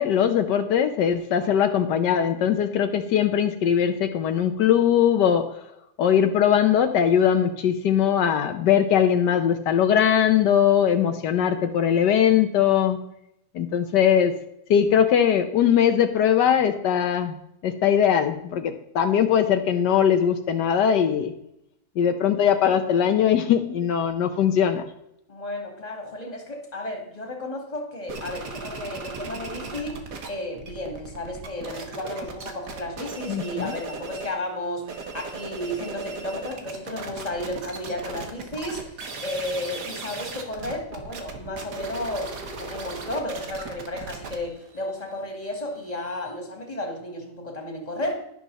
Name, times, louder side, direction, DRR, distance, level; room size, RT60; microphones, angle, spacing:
voice 1, 0.0-5.5 6.0-13.0 13.5-14.3 14.7-17.4 17.6-21.3 22.0-24.8 33.3-33.7, left 9 dB, 80° left, 7 dB, 1.4 m, -20 dB
voice 2, 25.3-30.0 30.3-42.3 42.6-48.2, left 1 dB, 20° left, 2 dB, 2.3 m, -33 dB
sound 1, 28.1-30.3 30.5-34.4 34.8-46.3, right 4 dB, 70° right, 2.1 m, -37 dB
11.5 x 11.0 x 4.1 m, 0.78 s
omnidirectional pair, 1.8 m